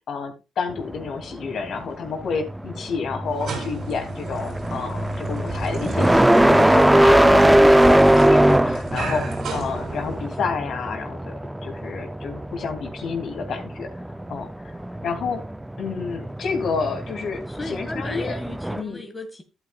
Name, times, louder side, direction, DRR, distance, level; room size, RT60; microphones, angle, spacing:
voice 1, 0.1-11.3 11.6-13.9 14.3-15.4 15.8-18.4 18.8-19.0, left 5 dB, 65° left, 2.8 m, -30 dB
sound 1, 0.8-18.8, right 1 dB, 5° right, 0.5 m, -21 dB
sound 2, 3.2-10.5, right 4 dB, 65° right, 3.6 m, -36 dB
voice 2, 17.4-19.4, left 2 dB, 20° left, 1.8 m, -35 dB
11.5 x 9.1 x 2.4 m
cardioid pair, 90°, 0 cm